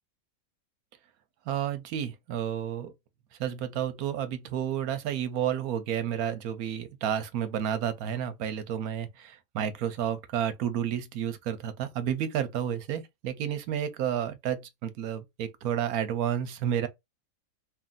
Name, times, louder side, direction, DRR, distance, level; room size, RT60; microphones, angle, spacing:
voice 1, 1.5-2.9 3.4-16.9, right 9 dB, 80° right, 1.1 m, -31 dB
3.1 x 2.6 x 2.2 m
omnidirectional pair, 1.6 m